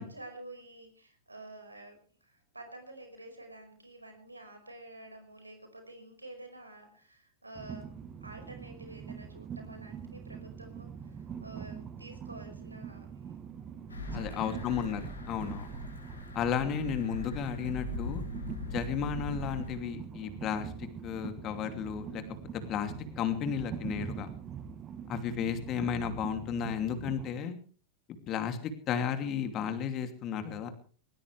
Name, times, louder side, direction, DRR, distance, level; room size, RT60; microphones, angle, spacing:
voice 1, 0.0-7.9 8.2-13.1 14.1-14.6 15.4-15.7 18.7-19.0, right 2 dB, 90° right, 5 dB, 5.5 m, -50 dB
Train, 7.5-27.3, right 7 dB, 25° right, 1.4 m, -43 dB
sound 1, 13.9-19.8, left 1 dB, 85° left, 5.7 m, -41 dB
voice 2, 14.1-15.7 16.3-18.2 18.6-22.2 22.7-24.3 25.1-27.6 28.3-28.6 28.9-30.7, left 8 dB, 35° left, 7 dB, 2.8 m, -33 dB
20.0 x 19.5 x 3.4 m, 0.41 s
figure-of-eight pair, 95°, 0 cm